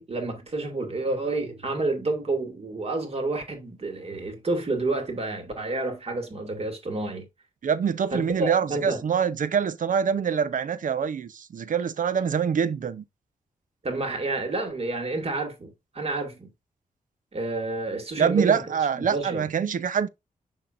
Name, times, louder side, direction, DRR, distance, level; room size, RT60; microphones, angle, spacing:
voice 1, 0.0-7.3 8.1-9.0 13.8-16.5 17.3-19.5, right 2 dB, 40° right, 2.3 m, -29 dB
voice 2, 7.6-13.0 18.2-20.1, right 7 dB, 60° right, 0.7 m, -25 dB
6.3 x 6.1 x 2.5 m
cardioid pair, 90°, 15 cm